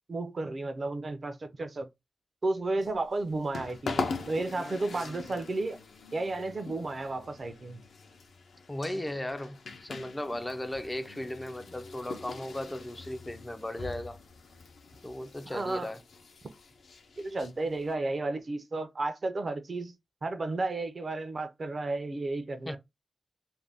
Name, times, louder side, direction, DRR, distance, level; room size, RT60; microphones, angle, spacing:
voice 1, 0.1-1.9 2.4-5.8 6.1-7.8 15.5-15.9 17.2-19.9 20.2-22.8, right 2 dB, 45° right, 0.5 m, -33 dB
sound 1, 2.8-17.9, left 4 dB, 80° left, 0.6 m, -42 dB
voice 2, 8.7-14.2 15.0-16.0 22.7-22.8, left 1 dB, 15° left, 0.3 m, -36 dB
2.5 x 2.2 x 3.3 m
wide cardioid pair, 115°, 0 cm